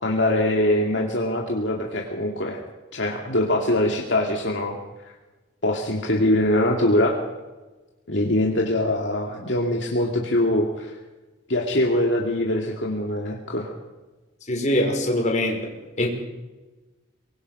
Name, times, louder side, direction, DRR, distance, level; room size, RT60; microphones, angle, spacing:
voice 1, 0.0-2.6 2.9-4.8 5.6-7.2 8.1-11.0 11.5-13.7, left 1 dB, 60° left, 0 dB, 2.3 m, -23 dB
voice 2, 14.5-15.7 16.0-16.1, left 1 dB, 35° left, 1 dB, 5.0 m, -23 dB
24.0 x 21.0 x 5.6 m, 1.2 s
head